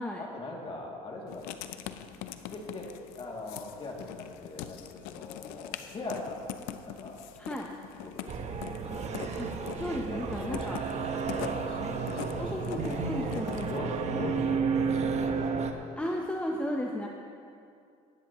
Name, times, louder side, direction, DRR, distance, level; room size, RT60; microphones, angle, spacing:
voice 1, 0.2-1.4 2.5-4.8 5.1-6.4 6.8-7.2 8.0-8.6 10.1-10.7 11.1-15.5, left 2 dB, 35° left, -1 dB, 2.8 m, -41 dB
Writing, 1.3-13.8, left 10 dB, 90° left, 0.6 m, -43 dB
sound 1, 8.3-15.7, right 5 dB, 45° right, 1.2 m, -32 dB
voice 2, 9.8-10.8 12.1-13.8 16.0-17.1, left 1 dB, 10° left, 0 dB, 1.0 m, -34 dB
17.5 x 13.0 x 3.2 m, 2.4 s
supercardioid pair, 90°, 15 cm